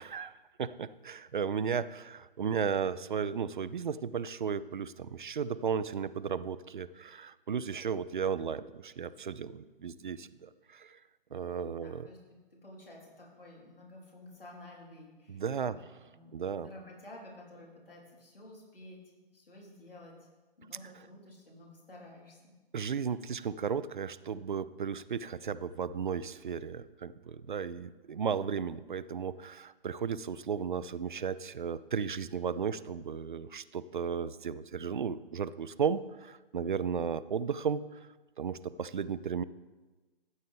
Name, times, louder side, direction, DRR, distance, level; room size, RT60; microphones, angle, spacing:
voice 1, 0.0-11.0 11.3-12.1 15.3-15.8 16.3-16.7 22.7-38.1 38.4-39.4, right 6 dB, 55° right, 15 dB, 0.5 m, -34 dB
voice 2, 11.8-12.2 12.6-20.2 20.6-22.5, left 1 dB, 70° left, -3 dB, 3.9 m, -52 dB
14.0 x 8.2 x 3.5 m, 1.2 s
figure-of-eight pair, 135°, 29 cm